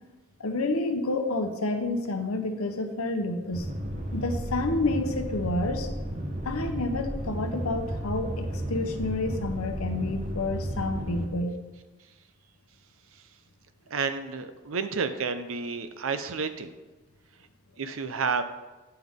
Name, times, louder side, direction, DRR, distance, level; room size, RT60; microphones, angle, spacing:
voice 1, 0.4-3.7 4.1-5.9 6.4-11.5, left 2 dB, 85° left, 6 dB, 0.9 m, -29 dB
sound 1, 3.5-11.3, right 1 dB, 35° right, 0.9 m, -33 dB
voice 2, 13.9-16.7 17.8-18.4, right 5 dB, 70° right, 9 dB, 0.6 m, -30 dB
9.9 x 5.7 x 3.6 m, 1.2 s
head